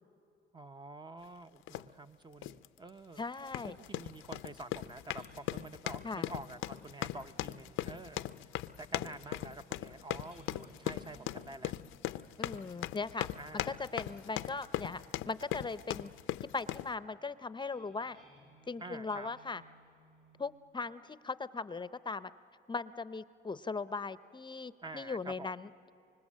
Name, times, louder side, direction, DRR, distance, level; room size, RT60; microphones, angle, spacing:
voice 1, 0.5-3.3 3.8-8.3 8.8-11.7 13.4-13.8 18.8-19.3 24.8-25.5, right 2 dB, 20° right, 9 dB, 0.6 m, -48 dB
sound 1, 1.7-1.9 2.4-2.7 3.4-16.9, left 14 dB, 85° left, 0.5 m, -39 dB
voice 2, 3.2-3.8 6.0-6.3 12.4-13.3 13.5-16.1 16.5-18.2 18.7-19.6 20.4-22.3 22.7-25.7, left 4 dB, 25° left, 14 dB, 0.6 m, -39 dB
sound 2, 4.9-20.6, right 1 dB, 70° right, 7.2 m, -64 dB
25.0 x 25.0 x 7.4 m, 2.7 s
cardioid pair, 90°, 20 cm